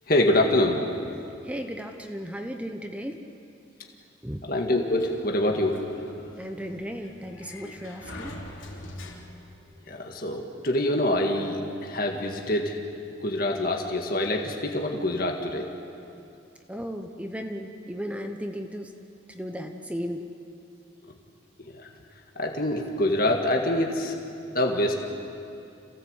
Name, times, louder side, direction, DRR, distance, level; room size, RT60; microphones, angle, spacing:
voice 1, 0.1-0.8 4.5-5.8 9.9-12.8 13.2-15.7 21.6-21.9 22.4-24.2 24.5-25.0, left 1 dB, 50° left, 1 dB, 1.9 m, -25 dB
voice 2, 1.4-3.2 4.2-4.4 6.4-8.3 16.7-18.9 19.3-20.3, equal, 5° right, 4 dB, 0.9 m, -35 dB
Sliding door, 5.0-9.6, left 1 dB, 85° left, 3.5 m, -44 dB
27.5 x 17.0 x 8.2 m, 2.7 s
head